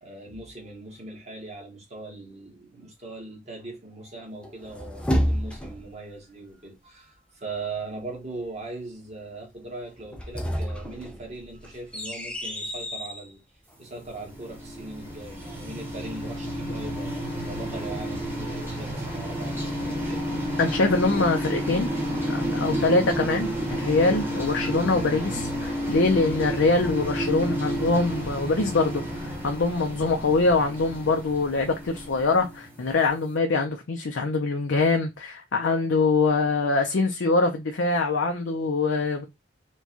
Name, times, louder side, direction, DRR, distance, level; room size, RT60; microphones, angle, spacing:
voice 1, 0.0-13.4 13.8-20.2, right 2 dB, 35° right, 1.3 m, -40 dB
sound 1, 4.4-5.9 10.0-13.3, equal, 5° left, 0.6 m, -30 dB
sound 2, 14.0-33.0, equal, 10° right, 1.1 m, -31 dB
voice 2, 20.6-21.9 22.3-39.3, left 3 dB, 70° left, 0.5 m, -24 dB
4.5 x 2.3 x 2.8 m
head